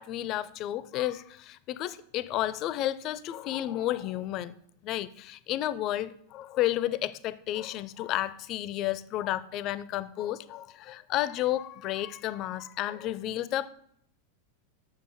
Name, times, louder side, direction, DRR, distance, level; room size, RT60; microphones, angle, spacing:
voice 1, 0.0-4.5 4.8-13.7, left 13 dB, 40° left, 0.4 m, -32 dB
7.2 x 6.5 x 3.7 m
figure-of-eight pair, 90°, 0 cm